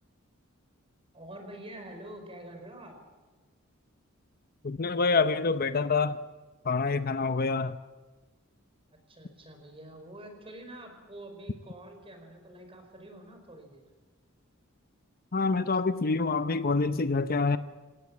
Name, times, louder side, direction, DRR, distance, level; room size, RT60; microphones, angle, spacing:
voice 1, 1.1-3.0 9.1-13.8, right 1 dB, 30° right, 4.9 m, -46 dB
voice 2, 4.6-6.2 6.6-7.8 15.3-17.6, left 4 dB, 45° left, 0.7 m, -26 dB
26.5 x 18.0 x 7.4 m
head